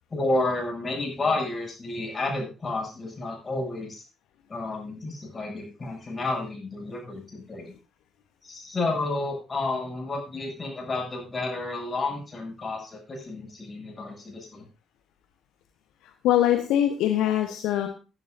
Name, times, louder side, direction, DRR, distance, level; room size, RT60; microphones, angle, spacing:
voice 1, 0.1-4.0 4.5-7.7 8.4-14.6, left 2 dB, 30° left, 0 dB, 7.8 m, -31 dB
voice 2, 16.2-17.9, left 11 dB, 60° left, 5 dB, 1.2 m, -22 dB
20.0 x 11.0 x 2.7 m, 0.33 s
figure-of-eight pair, 45°, 0 cm